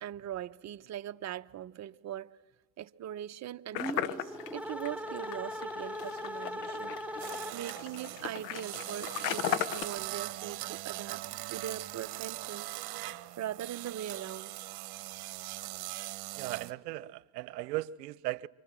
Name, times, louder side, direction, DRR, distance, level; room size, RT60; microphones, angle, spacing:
voice 1, 0.0-2.3 2.8-6.9 7.5-11.2 11.5-12.7 13.4-14.6, right 11 dB, 35° right, 0.9 m, -41 dB
sound 1, 3.7-9.8, left 12 dB, 75° left, 1.4 m, -37 dB
sound 2, 3.7-7.9, equal, 5° right, 1.1 m, -39 dB
sound 3, 7.2-16.7, right 18 dB, 50° right, 1.4 m, -41 dB
voice 2, 16.4-18.5, right 17 dB, 80° right, 0.9 m, -37 dB
29.0 x 25.0 x 7.5 m
hypercardioid pair, 90°, 48 cm